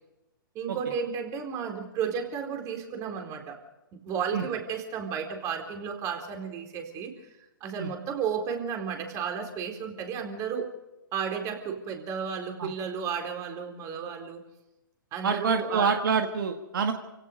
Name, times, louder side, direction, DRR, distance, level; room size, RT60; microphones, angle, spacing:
voice 1, 0.5-3.6 3.9-7.1 7.6-10.7 11.1-14.4 15.1-16.0, right 7 dB, 30° right, 4 dB, 4.1 m, -33 dB
voice 2, 15.2-16.9, right 5 dB, 65° right, 4 dB, 1.9 m, -26 dB
28.5 x 17.5 x 5.3 m, 0.94 s
hypercardioid pair, 130°, 12 cm